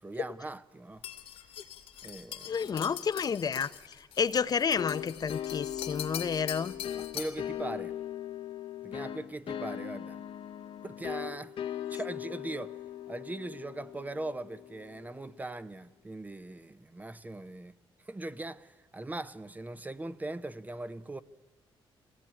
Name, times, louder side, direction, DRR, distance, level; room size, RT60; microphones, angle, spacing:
voice 1, 0.0-1.0 2.0-2.6 7.0-8.0 8.8-10.2 10.8-11.5 11.9-12.8 13.1-17.7 18.0-21.2, right 2 dB, 15° right, 0.7 m, -40 dB
sound 1, 1.0-7.5, left 10 dB, 90° left, 2.0 m, -43 dB
voice 2, 2.5-6.7, left 6 dB, 45° left, 0.6 m, -30 dB
sound 2, 4.8-15.2, left 11 dB, 70° left, 1.0 m, -40 dB
21.5 x 16.5 x 9.7 m
cardioid pair, 105°, 10 cm